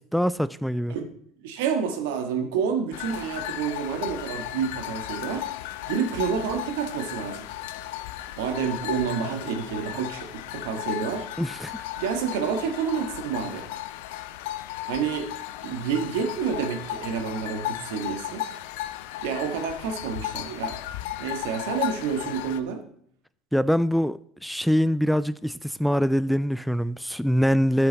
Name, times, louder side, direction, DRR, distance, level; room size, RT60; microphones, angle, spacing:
voice 1, 0.1-1.0 11.4-11.8 23.5-27.9, equal, ahead, 0.3 m, -24 dB
voice 2, 1.4-5.5 5.9-7.5 8.4-11.3 12.0-13.7 14.9-15.3 15.6-18.4 19.2-20.8 21.2-22.8, right 6 dB, 75° right, 1.5 m, -29 dB
sound 1, 2.9-22.6, left 14 dB, 75° left, 0.5 m, -35 dB
10.5 x 6.9 x 4.0 m
hypercardioid pair, 80°, 0 cm